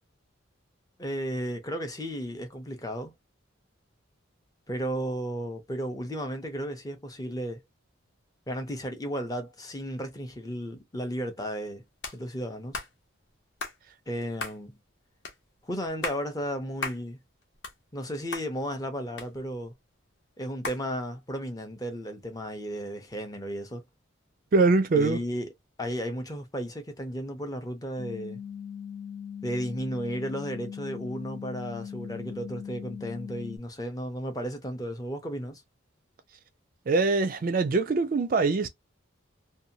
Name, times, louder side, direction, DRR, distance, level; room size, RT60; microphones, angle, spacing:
voice 1, 1.0-3.1 4.7-7.6 8.5-11.8 12.1-12.8 14.1-14.8 15.6-17.2 17.9-19.7 20.4-23.8 24.9-25.5 25.8-28.4 29.4-35.6, equal, 20° left, 0.6 m, -34 dB
sound 1, 12.0-12.2 12.7-12.9 13.6-13.8 14.4-14.6 15.2-15.4 15.9-16.2 16.8-17.0 17.4-18.1 18.3-18.5 19.2-19.7 20.6-20.8, left 3 dB, 60° left, 0.9 m, -35 dB
voice 2, 24.5-25.2 36.9-38.7, right 3 dB, 45° right, 0.3 m, -23 dB
sound 2, 28.0-33.6, left 8 dB, 80° left, 1.1 m, -40 dB
2.7 x 2.2 x 2.6 m
head